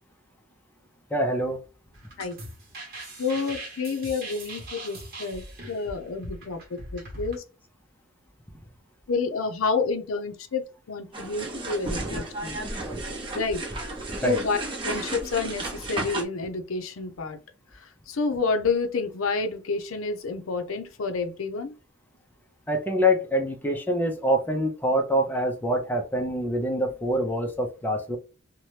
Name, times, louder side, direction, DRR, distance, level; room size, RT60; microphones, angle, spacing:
voice 1, 1.1-1.6 14.2-14.4 22.7-28.2, equal, 10° left, 3 dB, 0.5 m, -25 dB
sound 1, 1.9-7.4, right 1 dB, 45° right, 1.1 m, -40 dB
voice 2, 3.2-7.4 9.1-12.6 13.3-13.6 14.2-14.6 14.8-17.4 18.1-21.7, left 4 dB, 90° left, 6 dB, 0.5 m, -29 dB
sound 2, 11.1-16.2, right 2 dB, 25° right, 0.7 m, -33 dB
2.7 x 2.1 x 3.1 m, 0.34 s
head